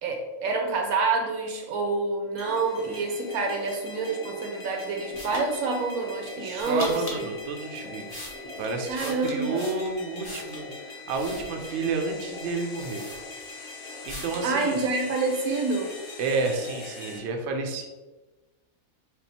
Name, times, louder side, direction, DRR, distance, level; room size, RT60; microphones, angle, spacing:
voice 1, 0.0-7.3 8.9-9.7 14.4-15.9, right 3 dB, 80° right, 3 dB, 1.2 m, -27 dB
sound 1, 2.4-17.2, left 3 dB, 55° left, 0.7 m, -41 dB
sound 2, 5.1-5.5 6.5-7.2 7.8-10.7 11.1-11.9 12.4-12.5 12.8-13.6 14.1-14.5, equal, 30° left, 0.4 m, -40 dB
voice 2, 6.4-8.3 8.6-13.0 14.0-14.8 16.2-17.9, right 3 dB, 65° right, 3 dB, 0.7 m, -30 dB
3.5 x 2.3 x 4.0 m, 1.2 s
omnidirectional pair, 1.5 m